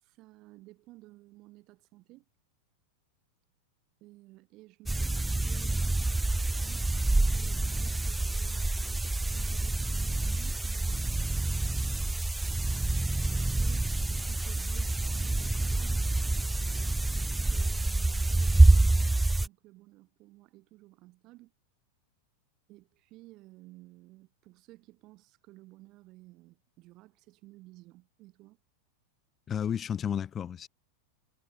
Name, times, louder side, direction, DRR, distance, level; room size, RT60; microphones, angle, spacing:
voice 1, 0.0-2.3 4.0-5.1 5.5-11.2 13.3-19.1 19.4-21.5 22.7-28.6, right 19 dB, 40° right, 7.1 m, -54 dB
sound 1, 4.9-19.5, right 2 dB, 5° right, 0.3 m, -27 dB
voice 2, 29.5-30.7, left 8 dB, 25° left, 1.4 m, -32 dB
figure-of-eight pair, 90°, 0 cm